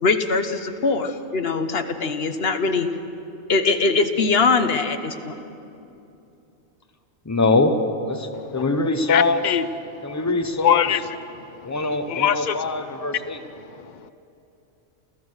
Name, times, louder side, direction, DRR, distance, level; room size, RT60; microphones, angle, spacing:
voice 1, 0.0-2.9 3.5-5.3, left 4 dB, 50° left, 1.1 m, -22 dB
voice 2, 7.2-7.8 8.1-9.4 10.0-10.8 11.6-13.4, left 3 dB, 15° left, 0.9 m, -23 dB
voice 3, 9.1-10.1 10.6-11.0 11.3-11.7 12.1-12.6 13.6-14.1, left 9 dB, 90° left, 0.4 m, -23 dB
29.0 x 14.0 x 6.3 m
omnidirectional pair, 1.4 m